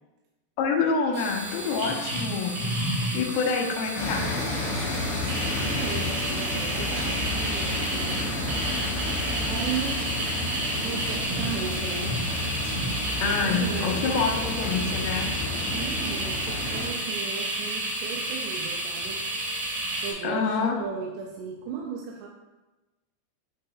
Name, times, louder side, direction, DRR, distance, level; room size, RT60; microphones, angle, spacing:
voice 1, 0.6-2.8 3.1-4.3 13.2-15.3 20.2-20.8, left 5 dB, 75° left, 0 dB, 2.4 m, -27 dB
sound 1, 1.1-20.1, right 1 dB, 65° right, 3.3 m, -31 dB
sound 2, 3.9-16.9, left 2 dB, 60° left, 1.8 m, -31 dB
voice 2, 5.2-8.7 9.4-10.1 10.5-12.2 13.2-14.2 15.6-19.2 20.0-22.3, right 6 dB, 80° right, 0 dB, 2.6 m, -36 dB
8.6 x 5.1 x 2.3 m, 1.1 s
omnidirectional pair, 5.2 m